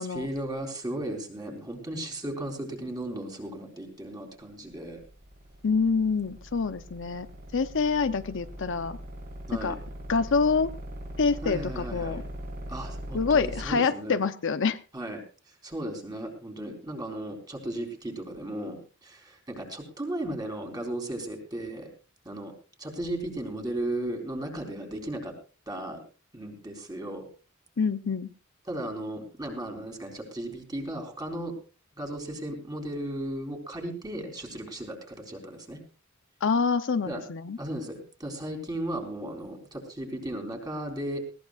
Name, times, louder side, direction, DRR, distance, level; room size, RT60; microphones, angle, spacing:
voice 1, 0.0-5.0 9.5-9.8 11.4-12.2 12.7-14.2 14.9-15.2 15.5-21.9 22.3-22.5 22.8-25.3 25.7-26.0 26.3-27.3 28.7-31.5 32.0-35.8 37.1-37.2 37.6-41.2, right 1 dB, 20° right, 2 dB, 3.9 m, -35 dB
sound 1, 4.7-13.7, equal, 45° right, 5.4 m, -40 dB
voice 2, 5.6-7.3 7.5-9.0 9.6-9.8 10.1-10.7 11.2-12.2 13.1-14.8 27.8-28.3 36.4-37.6, left 5 dB, 60° left, 10 dB, 0.7 m, -26 dB
20.0 x 17.5 x 2.5 m, 0.35 s
head